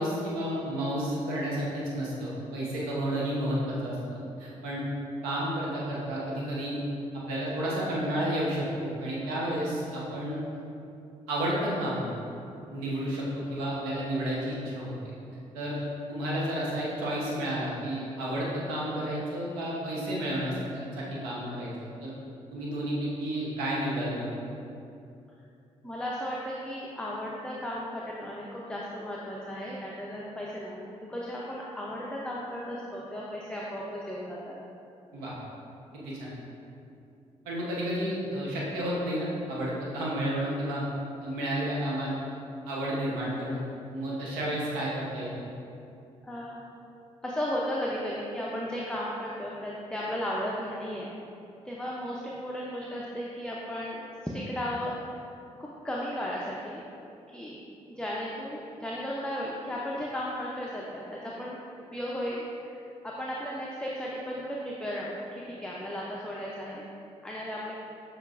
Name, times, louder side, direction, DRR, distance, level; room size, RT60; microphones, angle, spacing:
voice 1, 0.0-4.8 5.2-6.8 7.3-10.4 11.3-12.0 12.7-14.9 15.5-15.8 16.1-21.7 22.0-22.1 22.5-24.3 35.1-35.3 35.9-36.3 37.4-40.8 41.2-42.1 42.6-43.6 43.9-45.5, right 1 dB, 90° right, -5 dB, 0.8 m, -31 dB
voice 2, 25.8-34.6 46.2-46.6 47.2-51.2 51.6-55.3 55.6-56.8 57.3-61.6 61.9-66.8 67.2-67.7, equal, 5° left, -5 dB, 0.5 m, -35 dB
6.4 x 3.1 x 2.4 m, 2.6 s
supercardioid pair, 50°, 14 cm